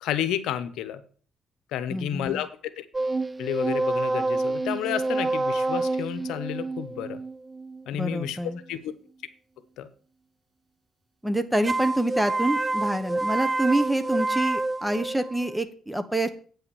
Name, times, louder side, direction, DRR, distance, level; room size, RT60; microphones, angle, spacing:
voice 1, 0.0-1.0 1.7-2.5 2.8-2.9 3.4-7.2 7.9-8.4 8.7-8.9 9.8-9.9, left 11 dB, 90° left, 12 dB, 0.9 m, -31 dB
voice 2, 1.9-2.4 7.9-8.6 11.2-16.3, right 1 dB, 5° right, 11 dB, 1.2 m, -26 dB
sound 1, 2.9-8.3 11.6-15.6, right 2 dB, 25° right, 0.4 m, -28 dB
9.0 x 5.8 x 6.9 m, 0.43 s
cardioid pair, 90°, 0 cm